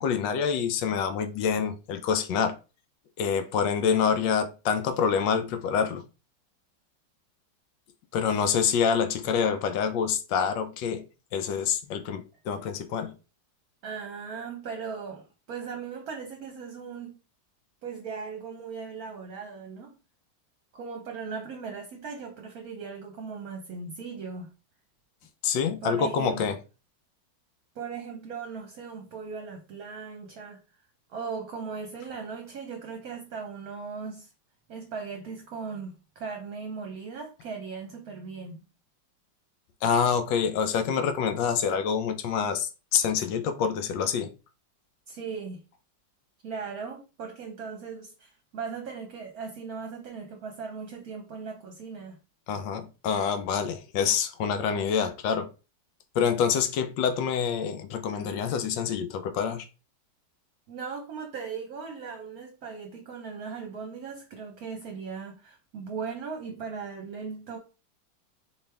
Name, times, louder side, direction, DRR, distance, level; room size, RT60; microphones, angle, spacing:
voice 1, 0.0-2.6 3.2-6.0 8.1-11.0 11.3-13.1 25.4-26.6 39.8-44.3 52.5-55.5 56.1-59.7, left 7 dB, 75° left, 1.3 m, -26 dB
voice 2, 13.8-17.2 17.8-19.9 20.7-24.5 25.8-26.5 27.7-30.6 31.1-34.3 34.7-38.6 45.1-45.6 46.4-52.2 60.7-67.6, right 5 dB, 60° right, 1.1 m, -38 dB
4.5 x 3.2 x 3.4 m
omnidirectional pair, 2.0 m